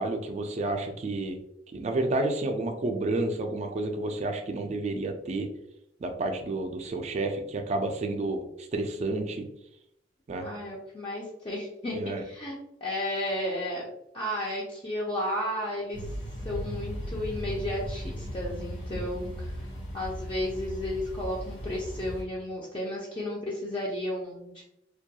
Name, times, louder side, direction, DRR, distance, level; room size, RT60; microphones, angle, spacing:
voice 1, 0.0-1.4 1.7-5.5 6.0-9.5 10.3-10.5 11.9-12.2 18.9-19.2, right 2 dB, 40° right, 5 dB, 0.3 m, -30 dB
voice 2, 10.4-11.9 12.2-13.9 14.1-16.1 16.4-19.6 19.9-24.6, left 1 dB, 30° left, -4 dB, 0.4 m, -33 dB
sound 1, 15.9-22.2, equal, 85° left, 1.0 m, -37 dB
2.2 x 2.2 x 2.7 m, 0.79 s
head